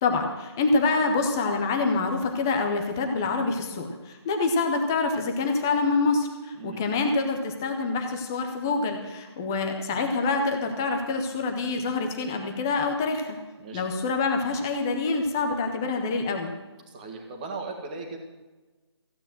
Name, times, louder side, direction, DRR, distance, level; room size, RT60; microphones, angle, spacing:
voice 1, 0.0-13.2 13.7-16.5, left 3 dB, 5° left, 4 dB, 0.5 m, -26 dB
voice 2, 16.9-18.2, right 3 dB, 15° right, 3 dB, 1.6 m, -37 dB
15.0 x 8.8 x 7.6 m, 1.2 s
figure-of-eight pair, 170°, 15 cm